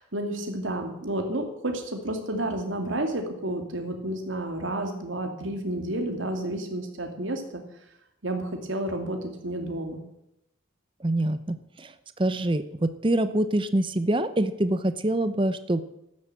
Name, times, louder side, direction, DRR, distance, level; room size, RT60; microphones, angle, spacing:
voice 1, 0.0-7.6 8.2-10.0, right 1 dB, 85° right, 4 dB, 2.5 m, -31 dB
voice 2, 11.0-11.9 12.2-15.8, right 1 dB, 25° right, 11 dB, 0.7 m, -25 dB
13.0 x 9.7 x 7.7 m, 0.83 s
head